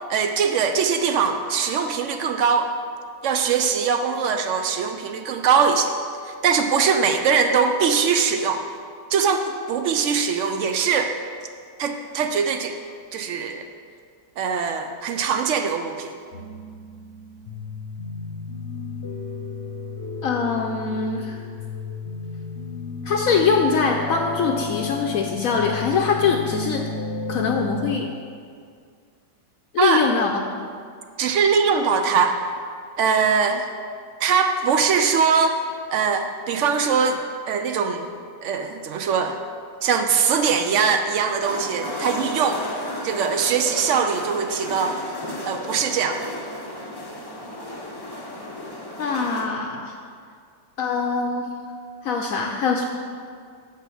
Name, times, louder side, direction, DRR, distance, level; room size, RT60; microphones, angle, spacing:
voice 1, 0.1-2.7 3.2-5.9 6.2-8.6 9.1-11.1 11.8-12.7 13.1-13.7 14.4-16.1 29.8-30.0 31.2-32.4 33.0-33.7 34.2-35.6 35.9-38.1 38.4-39.4 39.8-42.6 43.0-45.0 45.4-46.3, right 6 dB, 70° right, 6 dB, 0.7 m, -21 dB
sound 1, 16.3-28.0, left 4 dB, 50° left, 0.9 m, -33 dB
voice 2, 20.2-21.4 23.1-26.9 27.3-28.1 29.7-30.3 49.0-49.9 50.8-51.5 52.0-52.9, left 5 dB, 70° left, 2 dB, 0.9 m, -23 dB
sound 2, 41.4-49.5, left 1 dB, 30° left, 0.4 m, -34 dB
7.5 x 5.7 x 6.2 m, 2.2 s
omnidirectional pair, 1.8 m